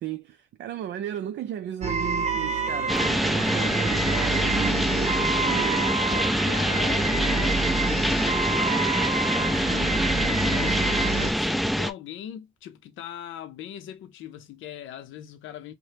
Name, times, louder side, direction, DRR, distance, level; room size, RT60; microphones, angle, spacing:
voice 1, 0.0-6.0, right 11 dB, 65° right, 0.4 m, -35 dB
sound 1, 1.8-11.3, right 3 dB, 35° right, 0.7 m, -28 dB
sound 2, 2.9-11.9, equal, ahead, 0.4 m, -25 dB
voice 2, 3.4-3.9 6.1-8.9 9.4-15.7, left 11 dB, 75° left, 0.5 m, -40 dB
2.8 x 2.1 x 3.2 m
cardioid pair, 90°, 20 cm